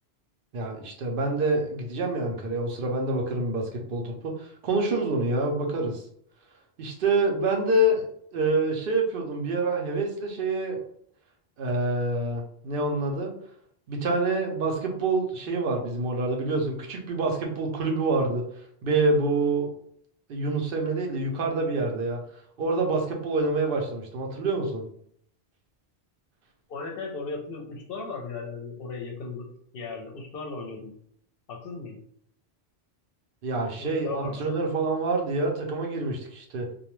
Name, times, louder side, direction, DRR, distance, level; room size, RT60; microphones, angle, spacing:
voice 1, 0.5-6.0 6.8-8.0 8.3-10.8 11.6-13.3 13.9-18.4 18.8-19.7 20.3-22.2 22.6-24.8 33.4-36.7, right 2 dB, 65° right, 1 dB, 0.7 m, -26 dB
voice 2, 26.7-29.5 29.7-30.9 31.5-32.0 33.8-34.4, left 4 dB, 65° left, 1 dB, 0.7 m, -36 dB
2.3 x 2.1 x 3.0 m, 0.66 s
omnidirectional pair, 1.1 m